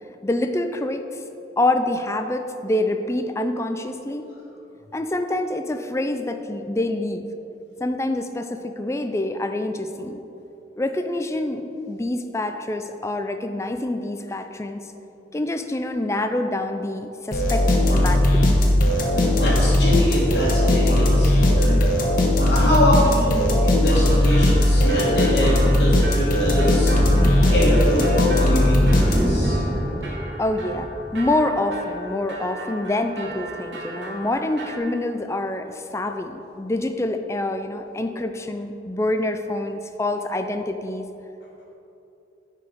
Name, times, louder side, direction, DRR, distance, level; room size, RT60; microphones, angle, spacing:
voice 1, 0.2-1.2 1.6-4.3 4.9-7.3 7.8-10.2 10.8-14.9 15.3-18.6 30.4-41.0, left 1 dB, 15° left, 7 dB, 0.4 m, -26 dB
sound 1, 17.3-29.5, left 1 dB, 50° left, 1.1 m, -18 dB
voice 2, 19.0-21.8 22.4-26.9 27.5-29.6, left 1 dB, 65° left, -8 dB, 1.5 m, -24 dB
sound 2, 24.1-34.8, right 1 dB, 85° right, 1.6 m, -36 dB
Thunder, 26.3-31.4 31.8-31.9 33.3-33.4, equal, 20° right, 1.1 m, -28 dB
10.0 x 4.6 x 5.1 m, 3.0 s
head